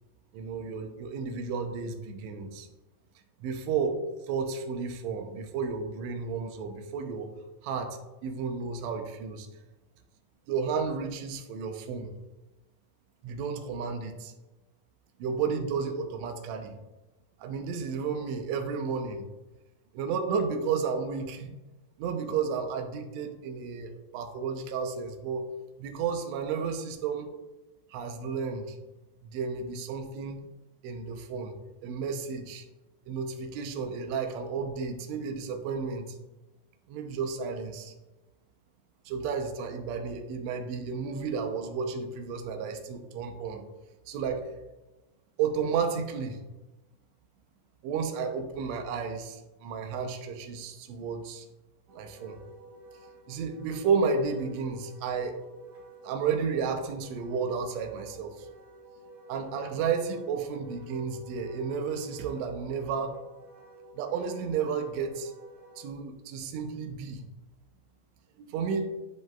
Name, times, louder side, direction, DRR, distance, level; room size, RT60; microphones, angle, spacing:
voice 1, 0.3-2.7 3.4-4.0 4.3-7.3 7.6-9.5 10.5-12.1 13.2-14.3 15.2-16.8 17.4-19.3 19.9-21.6 22.0-25.5 25.8-27.3 27.9-28.8 29.2-30.4 30.8-31.5 31.8-32.6 33.1-36.2 36.9-37.9 39.0-43.6 44.1-44.5 45.4-46.4 47.8-51.5 51.9-52.4 53.3-55.4 56.0-58.5 59.3-63.2 63.9-65.3 65.8-67.2 68.4-68.9, right 5 dB, 80° right, 4 dB, 1.6 m, -32 dB
Wind instrument woodwind instrument, 51.9-65.9, right 2 dB, 50° right, 1.2 m, -51 dB
9.4 x 5.1 x 2.4 m, 1.1 s
omnidirectional pair, 4.0 m